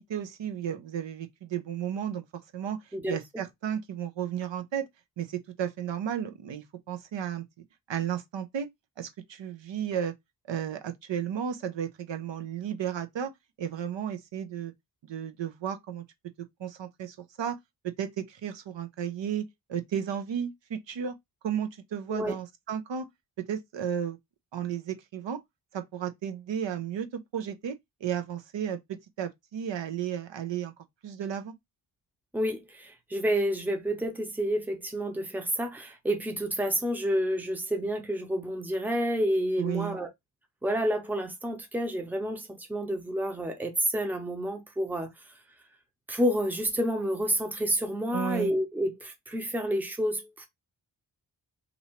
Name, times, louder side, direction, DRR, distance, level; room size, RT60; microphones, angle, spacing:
voice 1, 0.1-2.2 2.5-4.9 5.2-7.4 7.9-8.7 9.0-10.1 10.5-13.3 13.6-14.7 15.0-16.0 16.6-17.6 18.0-21.2 21.4-23.1 23.5-24.2 24.5-25.4 25.7-27.8 28.0-28.8 29.2-31.5 39.5-40.0 48.1-48.5, right 9 dB, 80° right, 0.7 m, -33 dB
voice 2, 32.3-40.1 40.6-45.1 46.1-50.5, equal, 5° right, 0.7 m, -29 dB
2.8 x 2.7 x 4.3 m
wide cardioid pair, 155°, 44 cm